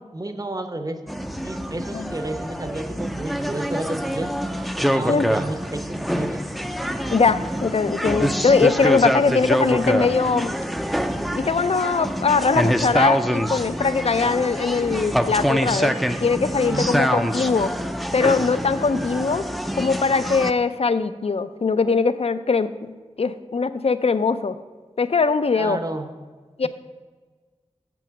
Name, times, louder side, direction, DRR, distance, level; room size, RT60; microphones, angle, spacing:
voice 1, 0.1-1.0 1.4-4.3 4.6-5.8 6.1-6.4 16.6-16.9 25.5-26.1, right 2 dB, 30° right, 7 dB, 0.9 m, -31 dB
sound 1, 1.1-20.5, equal, ahead, 0.5 m, -25 dB
voice 2, 7.1-10.5 11.3-15.9 16.2-17.7 18.1-19.4 19.8-22.9 23.2-24.6 25.0-25.8 26.6-26.7, left 4 dB, 60° left, 13 dB, 0.5 m, -21 dB
7.0 x 6.0 x 7.0 m, 1.4 s
wide cardioid pair, 55°, 12 cm